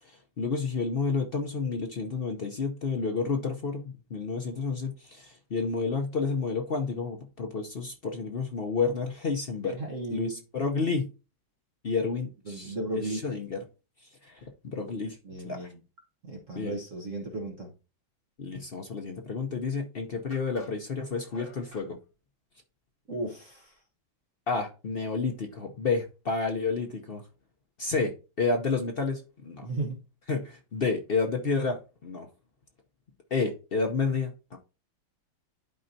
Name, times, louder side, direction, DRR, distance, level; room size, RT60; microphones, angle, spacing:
voice 1, 0.0-9.8 10.1-11.1 11.8-12.7 13.0-13.6 14.2-15.2 15.4-15.7 16.6-16.7 18.4-22.0 24.5-27.2 27.8-29.6 30.3-32.3 33.3-34.6, left 4 dB, 70° left, 0.5 m, -30 dB
voice 2, 9.6-10.4 12.5-13.2 15.2-15.8 16.2-17.7 23.1-23.8 29.6-30.0, right 2 dB, 45° right, 1.4 m, -35 dB
sound 1, 19.5-19.6 20.3-21.9, left 2 dB, 25° right, 2.7 m, -51 dB
11.5 x 4.4 x 2.7 m
omnidirectional pair, 2.1 m